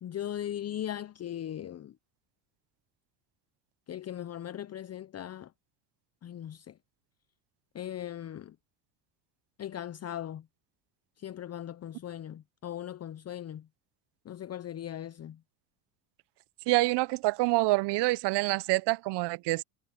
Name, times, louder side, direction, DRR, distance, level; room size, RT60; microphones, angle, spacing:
voice 1, 0.0-1.9 3.9-5.5 6.2-6.7 7.7-8.5 9.6-10.4 11.2-13.7 14.2-15.4, left 11 dB, 30° left, 0.9 m, -39 dB
voice 2, 16.7-19.6, right 21 dB, 55° right, 1.1 m, -26 dB
hypercardioid pair, 80°, 49 cm